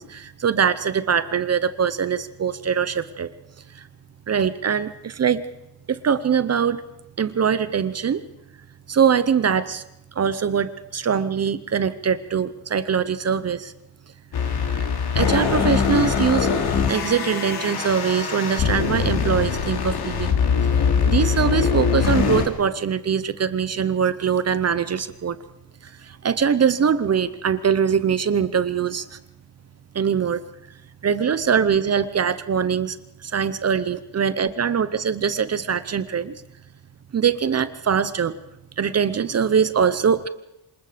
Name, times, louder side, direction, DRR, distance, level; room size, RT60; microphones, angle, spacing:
voice 1, 0.0-3.3 3.7-3.9 4.3-5.5 5.9-6.8 7.2-8.2 8.9-9.8 10.1-13.7 14.6-14.9 15.1-16.5 16.9-20.4 20.8-25.4 25.8-29.2 29.9-30.4 31.0-33.0 33.2-36.3 37.1-38.3 38.8-40.3, right 7 dB, 40° right, 14 dB, 0.8 m, -22 dB
sound 1, 14.3-22.5, left 6 dB, 65° left, 3.0 m, -22 dB
26.5 x 20.5 x 5.1 m, 0.90 s
wide cardioid pair, 145°, 41 cm